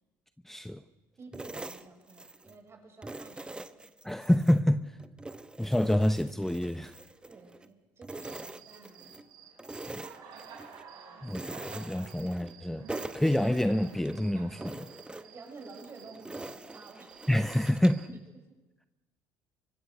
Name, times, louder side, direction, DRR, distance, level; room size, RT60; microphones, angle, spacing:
voice 1, 0.4-0.8 4.0-4.8 5.6-6.9 9.9-10.0 11.2-12.9 13.1-14.9 17.3-18.1, left 1 dB, 5° left, 0.7 m, -27 dB
voice 2, 1.2-3.7 7.3-9.2 15.3-17.2 18.4-18.5, right 3 dB, 35° right, 6.6 m, -51 dB
sound 1, 1.3-2.6 3.0-4.6 5.0-7.7 8.0-9.3 9.6-10.9 11.3-12.6 12.9-14.2 14.6-18.1, right 2 dB, 15° right, 1.2 m, -44 dB
Cricket, 8.1-18.1, right 6 dB, 70° right, 5.8 m, -52 dB
24.0 x 24.0 x 6.5 m
supercardioid pair, 80°, 7 cm